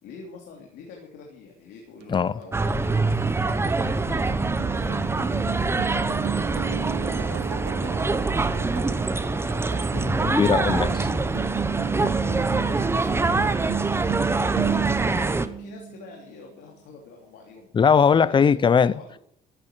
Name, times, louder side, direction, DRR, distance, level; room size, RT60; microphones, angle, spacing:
voice 1, 0.0-6.1 6.4-9.5 12.0-13.4 14.0-14.2 14.6-17.7 17.9-19.2, left 4 dB, 80° left, 3.1 m, -45 dB
sound 1, 2.0-16.2, right 11 dB, 90° right, 1.2 m, -33 dB
sound 2, 2.5-15.5, right 3 dB, 15° right, 1.0 m, -25 dB
voice 2, 9.9-11.1 17.7-18.9, left 6 dB, 30° left, 0.6 m, -20 dB
13.5 x 9.0 x 8.1 m
cardioid pair, 110°, 17 cm